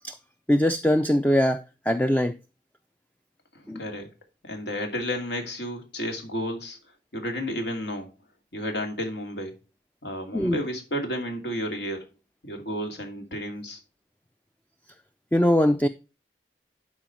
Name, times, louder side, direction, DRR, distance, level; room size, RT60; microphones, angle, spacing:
voice 1, 0.5-2.4 3.7-3.8 10.3-10.6 15.3-15.9, equal, 10° left, 0.4 m, -22 dB
voice 2, 3.5-4.1 4.4-6.8 7.1-8.1 8.5-9.5 10.0-12.0 12.4-13.8, equal, 75° left, 2.5 m, -32 dB
11.5 x 4.9 x 4.4 m
head